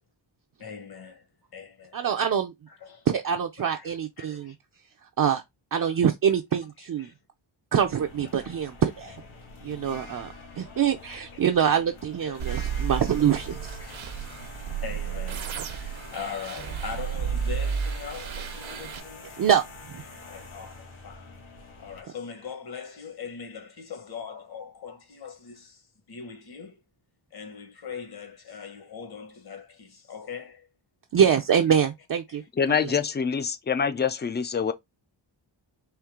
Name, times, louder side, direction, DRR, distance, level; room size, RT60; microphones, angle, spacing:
voice 1, 0.6-1.3 1.5-2.0 2.7-3.1 3.7-4.6 5.8-6.0 6.8-7.1 8.4-8.5 9.6-9.7 10.7-10.8 11.6-11.8 12.3-12.8 13.8-14.3 14.8-19.3 20.0-21.4 21.8-26.8 27.3-30.7 32.3-32.5, left 6 dB, 50° left, 1.3 m, -41 dB
voice 2, 1.9-2.5 3.1-4.5 5.2-5.4 5.7-7.1 7.7-9.1 9.6-10.3 10.6-13.8 19.4-19.6 19.9-20.0 31.1-32.4, right 8 dB, 45° right, 0.5 m, -24 dB
sound 1, 7.8-22.0, left 3 dB, 90° left, 2.0 m, -45 dB
sound 2, 12.4-19.0, right 7 dB, 75° right, 0.9 m, -32 dB
voice 3, 32.6-34.7, left 6 dB, 25° left, 0.3 m, -25 dB
4.5 x 3.2 x 3.6 m
wide cardioid pair, 180°, 47 cm